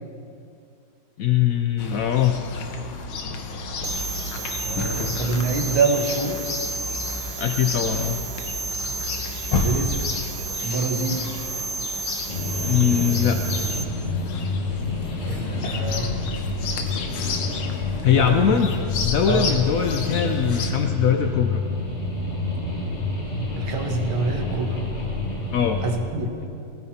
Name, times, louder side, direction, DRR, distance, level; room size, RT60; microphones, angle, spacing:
voice 1, 1.2-2.4 7.4-8.2 12.6-13.4 18.0-21.6 25.5-25.8, left 9 dB, 75° left, 6 dB, 0.7 m, -21 dB
Chirp tweet, 1.8-20.7, left 4 dB, 90° left, 2.0 m, -32 dB
sound 1, 3.8-13.8, right 4 dB, 65° right, 1.2 m, -31 dB
voice 2, 4.6-6.4 9.6-10.2 10.6-11.2 15.3-16.1 18.1-18.6 19.3-19.5 23.6-24.8 25.8-26.4, right 3 dB, 80° right, 3 dB, 2.2 m, -26 dB
sound 2, 12.3-26.0, left 2 dB, 35° left, 2.3 m, -28 dB
19.0 x 15.5 x 4.3 m, 2.6 s
omnidirectional pair, 2.2 m